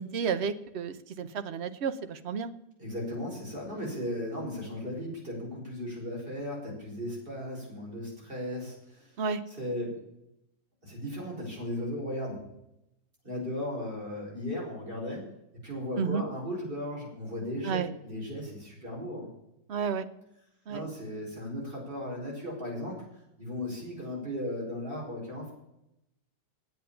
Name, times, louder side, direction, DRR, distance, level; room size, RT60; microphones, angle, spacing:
voice 1, 0.0-2.5 9.2-9.4 16.0-16.2 17.6-17.9 19.7-20.1 20.7-20.8, right 6 dB, 55° right, 10 dB, 0.7 m, -31 dB
voice 2, 2.8-9.1 9.5-10.0 10.8-12.4 13.2-15.2 15.6-19.3 20.7-23.0 23.4-25.5, left 1 dB, 30° right, -3 dB, 5.2 m, -36 dB
8.8 x 8.6 x 8.7 m, 0.84 s
omnidirectional pair, 2.0 m